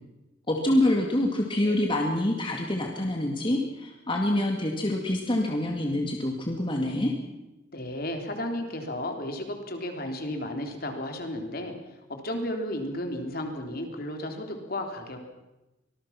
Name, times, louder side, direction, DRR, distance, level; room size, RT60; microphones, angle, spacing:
voice 1, 0.5-7.1, left 1 dB, 25° left, 1 dB, 2.2 m, -26 dB
voice 2, 7.7-15.2, left 1 dB, 50° left, 4 dB, 3.5 m, -33 dB
24.5 x 20.0 x 5.9 m, 0.99 s
head